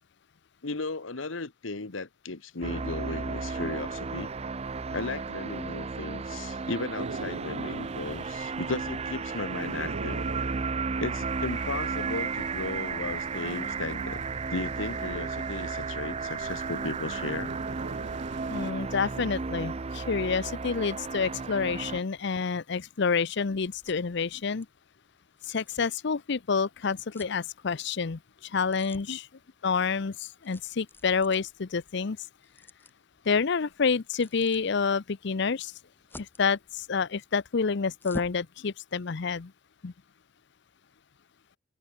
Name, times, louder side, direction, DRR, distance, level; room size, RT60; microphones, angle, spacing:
voice 1, 0.6-4.3 4.9-10.3 11.0-14.2 14.5-17.5 29.1-29.2, left 3 dB, 85° left, 1.4 m, -35 dB
sound 1, 2.6-22.0, right 4 dB, 35° right, 0.6 m, -34 dB
sound 2, 7.0-18.7, right 3 dB, 65° right, 0.8 m, -43 dB
voice 2, 18.5-24.7 25.4-29.3 29.6-32.2 33.2-35.7 36.2-39.5 39.8-39.9, left 5 dB, 60° left, 0.6 m, -28 dB
sound 3, 22.1-38.5, left 1 dB, 10° left, 3.6 m, -51 dB
open air
head